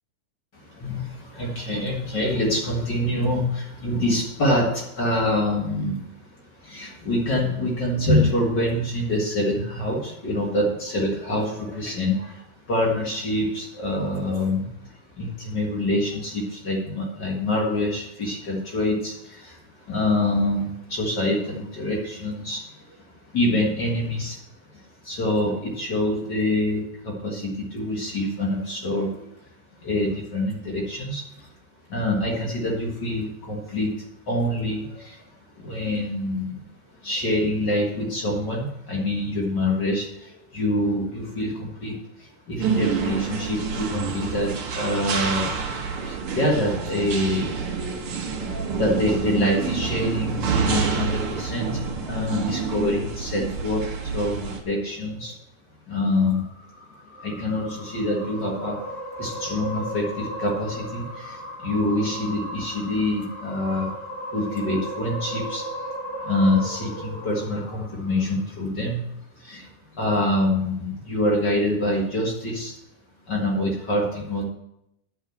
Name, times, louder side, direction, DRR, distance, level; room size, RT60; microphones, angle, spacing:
voice 1, 0.5-24.4 24.7-29.3 29.7-31.5 31.9-36.6 37.0-45.5 45.8-55.4 55.9-56.5 57.1-63.9 64.3-65.9 66.2-69.0 69.3-72.7 73.3-74.4, left 1 dB, 45° left, -2 dB, 1.5 m, -26 dB
sound 1, 42.6-54.6, right 5 dB, 85° right, 1.2 m, -28 dB
sound 2, 56.2-68.7, equal, 30° left, 2.8 m, -36 dB
9.5 x 6.3 x 7.6 m, 0.81 s
omnidirectional pair, 4.4 m